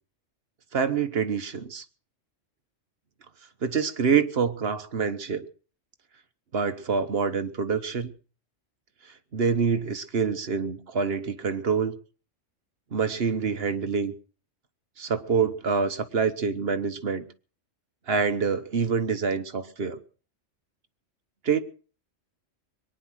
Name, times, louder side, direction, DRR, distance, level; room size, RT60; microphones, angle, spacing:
voice 1, 0.7-1.8 3.6-5.5 6.5-8.1 9.3-11.9 12.9-14.1 15.0-17.3 18.1-20.0 21.4-21.6, right 6 dB, 55° right, 1.3 m, -26 dB
22.5 x 9.9 x 6.3 m
omnidirectional pair, 1.3 m